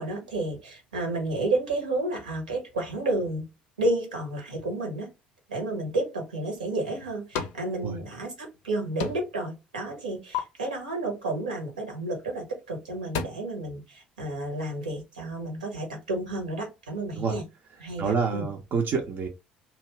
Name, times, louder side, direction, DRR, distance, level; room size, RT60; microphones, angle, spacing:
voice 1, 0.0-3.5 3.8-5.1 5.5-17.4 17.8-18.5, right 2 dB, 80° right, 0.9 m, -31 dB
sound 1, 6.6-7.7 8.0-8.7 9.0-9.4 9.8-10.4 12.2-12.4 12.8-13.2, left 7 dB, 60° left, 0.5 m, -35 dB
voice 2, 18.0-19.3, right 5 dB, 45° right, 0.6 m, -27 dB
2.7 x 2.4 x 3.1 m
figure-of-eight pair, 55°, 4 cm